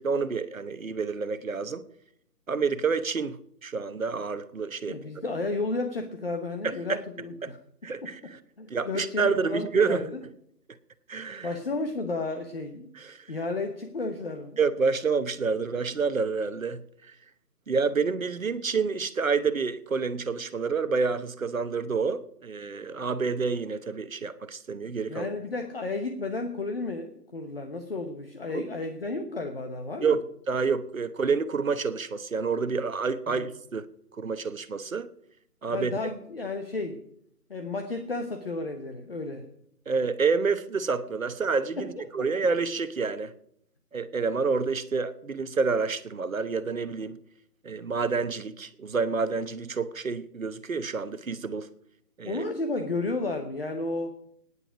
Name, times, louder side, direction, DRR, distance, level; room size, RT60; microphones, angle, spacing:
voice 1, 0.0-1.8 2.5-5.0 6.6-7.0 7.4-7.5 7.8-8.4 8.7-10.0 11.1-11.5 13.0-13.2 14.6-16.8 17.7-25.3 28.5-28.6 30.0-30.2 30.5-33.8 34.2-35.1 35.6-35.9 39.9-43.3 43.9-47.2 47.6-51.7 52.2-52.4, right 5 dB, 55° right, 1.1 m, -28 dB
voice 2, 4.9-7.6 8.0-8.3 8.6-10.2 11.4-12.9 13.3-14.6 25.1-30.2 33.3-33.5 35.7-37.0 37.5-39.5 41.8-42.3 52.3-54.2, left 3 dB, 35° left, 1.1 m, -32 dB
18.5 x 10.0 x 5.0 m
figure-of-eight pair, 160°, 48 cm